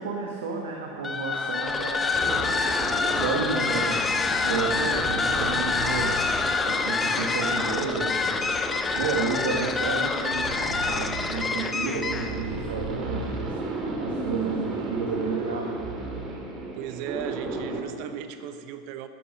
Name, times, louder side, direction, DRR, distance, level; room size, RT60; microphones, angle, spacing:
voice 1, 0.0-2.4 3.2-4.2 4.4-6.1 6.6-8.2 9.0-13.5 14.0-15.8, right 4 dB, 75° right, 0 dB, 1.4 m, -31 dB
sound 1, 1.0-12.4, left 4 dB, 20° left, 0.9 m, -26 dB
sound 2, 2.1-17.8, right 3 dB, 35° right, 2.4 m, -34 dB
voice 2, 16.7-19.1, right 9 dB, 60° right, 9 dB, 0.7 m, -37 dB
12.5 x 11.5 x 5.3 m, 2.5 s
hypercardioid pair, 85°, 0 cm